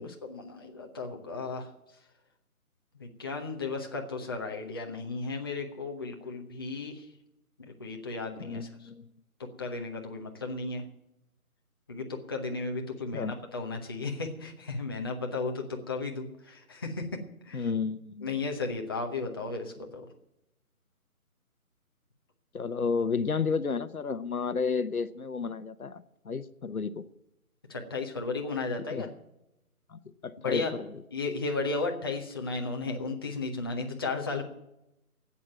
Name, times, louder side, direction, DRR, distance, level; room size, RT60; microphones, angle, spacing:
voice 1, 0.0-1.7 3.0-7.1 7.7-8.7 9.6-10.8 11.9-17.0 17.4-17.7 18.2-20.0 27.7-29.1 30.4-30.7 31.1-34.4, left 3 dB, 15° left, 1 dB, 0.8 m, -34 dB
voice 2, 8.4-9.1 13.1-13.3 17.5-18.4 22.5-27.0 28.9-29.1 29.9-30.9, left 5 dB, 75° left, 14 dB, 1.1 m, -32 dB
13.5 x 8.6 x 9.1 m, 0.87 s
figure-of-eight pair, 155°, 44 cm